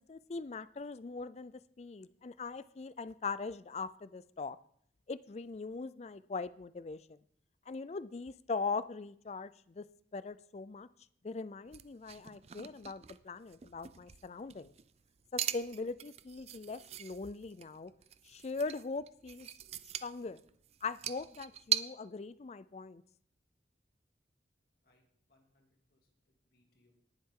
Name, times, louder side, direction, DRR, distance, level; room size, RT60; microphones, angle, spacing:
voice 1, 0.1-1.5 1.8-4.6 5.1-7.2 7.7-9.8 10.1-10.9 11.2-14.7 15.3-17.9 18.2-19.5 20.0-20.4 20.8-23.0, left 4 dB, 40° left, 16 dB, 0.4 m, -41 dB
sound 1, 11.7-21.8, right 10 dB, 35° right, 0.4 m, -41 dB
voice 2, 24.8-27.0, left 1 dB, 55° left, 1 dB, 2.6 m, -74 dB
18.5 x 7.3 x 3.8 m, 0.63 s
head